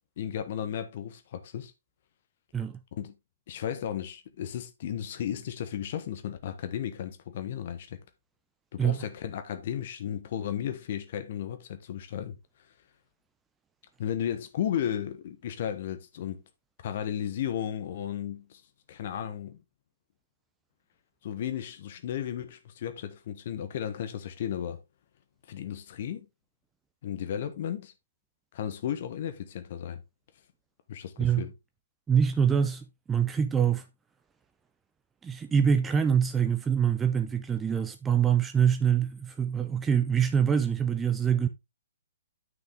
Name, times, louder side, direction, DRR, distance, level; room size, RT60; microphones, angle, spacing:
voice 1, 0.2-1.7 2.9-3.1 3.5-8.0 8.7-12.3 14.0-16.4 16.8-18.6 18.9-19.6 21.2-24.8 25.5-26.3 27.0-27.9 28.5-30.0 30.9-31.5, left 9 dB, 45° left, 1.2 m, -34 dB
voice 2, 32.1-33.9 35.2-41.5, right 7 dB, 10° right, 0.7 m, -25 dB
9.6 x 5.9 x 3.5 m
figure-of-eight pair, 125°, 0 cm